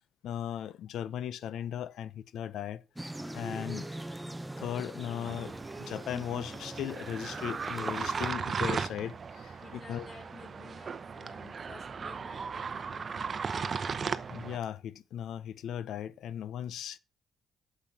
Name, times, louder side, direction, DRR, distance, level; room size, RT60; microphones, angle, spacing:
voice 1, 0.2-2.8 3.3-3.9 4.6-5.5 5.8-9.5 9.9-10.1 14.1-17.0, left 10 dB, 75° left, 0.7 m, -37 dB
sound 1, 3.0-8.3, right 1 dB, 10° right, 0.8 m, -42 dB
sound 2, 5.2-14.6, right 5 dB, 45° right, 0.8 m, -37 dB
voice 2, 9.6-13.5, left 4 dB, 40° left, 4.8 m, -53 dB
8.6 x 7.1 x 5.9 m
supercardioid pair, 65°, 0 cm